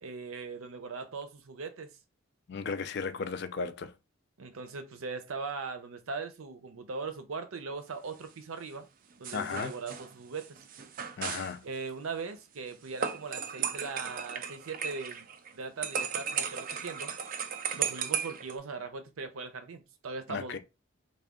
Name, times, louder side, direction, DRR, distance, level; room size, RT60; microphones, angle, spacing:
voice 1, 0.0-2.0 4.4-8.9 9.2-10.6 11.6-15.3 15.5-17.1 17.7-20.6, right 4 dB, 85° right, 0.6 m, -40 dB
voice 2, 2.5-3.9 9.3-9.7 11.2-11.7 20.3-20.6, left 5 dB, 50° left, 0.4 m, -35 dB
sound 1, 9.2-11.5 13.0-15.5 15.8-18.6, right 7 dB, 40° right, 0.3 m, -35 dB
3.4 x 2.3 x 3.6 m
head